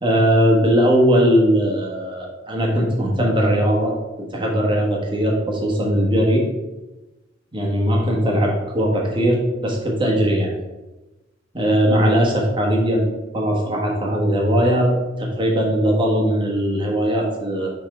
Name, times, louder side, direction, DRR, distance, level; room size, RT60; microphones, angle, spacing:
voice 1, 0.0-3.9 4.3-6.4 7.5-10.5 11.5-13.1 13.3-17.7, equal, 25° right, -2 dB, 1.3 m, -19 dB
5.7 x 3.6 x 4.9 m, 1.1 s
head